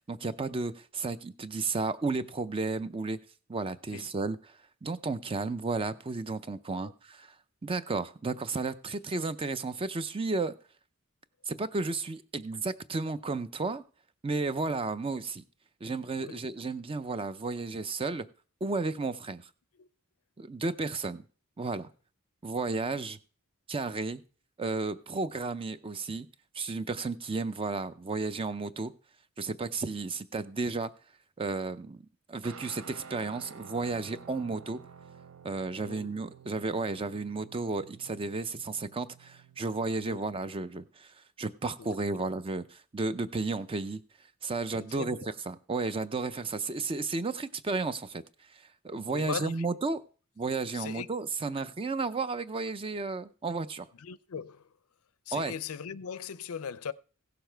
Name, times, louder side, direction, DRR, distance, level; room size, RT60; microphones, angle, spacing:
voice 1, 0.1-3.2 3.5-4.4 4.8-7.3 7.6-10.5 11.5-13.8 14.2-15.4 15.8-18.3 18.6-19.4 20.4-21.2 21.6-21.9 22.4-23.2 23.7-24.2 24.6-26.3 26.5-28.9 29.4-30.9 31.4-32.0 32.3-34.8 35.4-42.6 42.9-44.0 44.4-45.2 45.5-48.2 48.5-50.0 50.4-53.9 55.3-55.5, right 3 dB, 25° right, 0.5 m, -33 dB
Guitar, 32.4-40.6, right 6 dB, 70° right, 0.5 m, -51 dB
voice 2, 44.8-45.3 49.1-49.6 50.7-51.1 54.0-54.7 55.3-56.9, left 6 dB, 85° left, 0.5 m, -39 dB
16.0 x 6.9 x 4.5 m
head